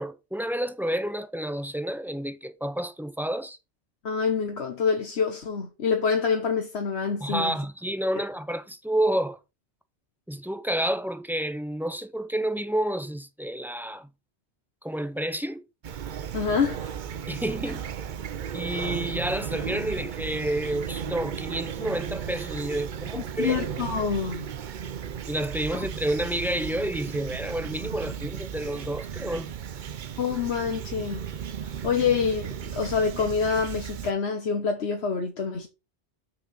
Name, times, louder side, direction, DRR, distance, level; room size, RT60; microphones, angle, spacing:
voice 1, 0.0-3.6 7.2-9.4 10.3-14.1 14.8-15.6 17.3-17.8 18.5-23.6 25.3-29.5, right 1 dB, 5° right, 0.3 m, -29 dB
voice 2, 4.0-7.5 8.2-8.3 16.3-17.0 23.1-24.5 25.7-25.9 30.2-31.2 31.6-35.7, left 6 dB, 70° left, 1.3 m, -27 dB
Fowl / Chirp tweet, 15.8-34.1, right 8 dB, 55° right, 0.7 m, -35 dB
6.4 x 4.9 x 5.6 m
omnidirectional pair, 1.1 m